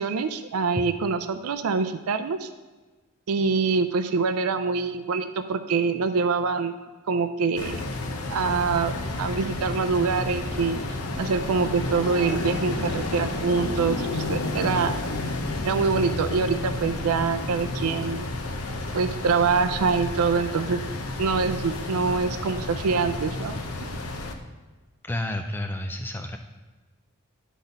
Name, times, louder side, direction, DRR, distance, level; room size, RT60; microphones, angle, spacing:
voice 1, 0.0-2.5 3.3-6.7 7.1-7.8 8.3-14.9 15.6-18.2 18.9-20.8 21.2-23.6, right 5 dB, 90° right, 9 dB, 0.4 m, -25 dB
sound 1, 7.6-24.3, left 2 dB, 85° left, 0.8 m, -31 dB
voice 2, 25.0-26.4, left 1 dB, 10° left, 5 dB, 0.3 m, -30 dB
10.0 x 4.1 x 5.3 m, 1.2 s
head